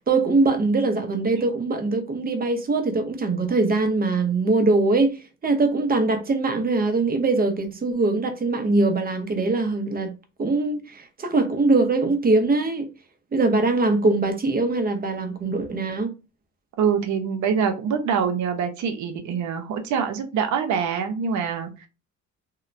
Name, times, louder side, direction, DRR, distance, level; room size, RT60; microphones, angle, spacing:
voice 1, 0.1-10.1 10.4-12.9 13.3-16.1, right 3 dB, 30° right, 0.7 m, -22 dB
voice 2, 16.8-21.9, right 7 dB, 70° right, 0.7 m, -25 dB
2.8 x 2.1 x 2.5 m
cardioid pair, 90°, 30 cm